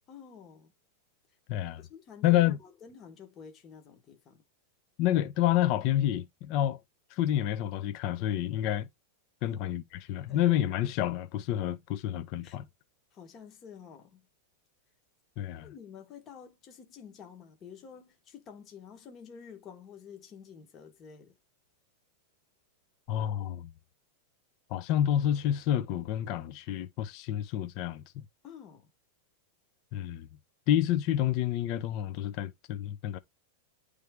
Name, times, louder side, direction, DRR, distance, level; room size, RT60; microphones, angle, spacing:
voice 1, 0.1-0.7 1.8-4.4 9.4-9.6 10.3-10.6 12.4-12.6 13.1-14.3 15.6-21.3 28.4-28.9, left 7 dB, 25° left, 1.1 m, -50 dB
voice 2, 1.5-1.8 2.2-2.6 5.0-6.8 7.1-8.9 9.4-12.7 15.4-15.7 23.1-23.7 24.7-28.2 29.9-30.3 30.7-33.2, left 12 dB, 45° left, 0.5 m, -29 dB
9.2 x 3.3 x 3.5 m
supercardioid pair, 150°, 0 cm